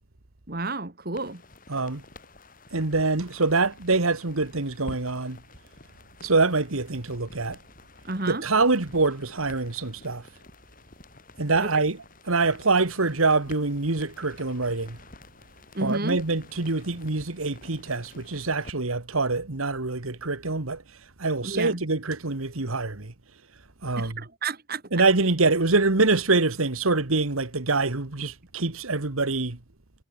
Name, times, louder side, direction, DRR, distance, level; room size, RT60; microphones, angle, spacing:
voice 1, 0.5-1.4 8.0-8.4 11.6-11.7 15.7-16.2 21.4-21.8 24.0-24.8, right 2 dB, 45° right, 2.5 m, -31 dB
sound 1, 1.1-18.7, left 2 dB, 40° left, 7.4 m, -50 dB
voice 2, 1.7-2.0 2.7-5.4 6.2-7.6 8.3-10.2 11.4-12.0 12.3-15.0 15.8-20.8 21.2-23.1 23.8-24.1 24.9-29.6, right 3 dB, 90° right, 1.8 m, -25 dB
head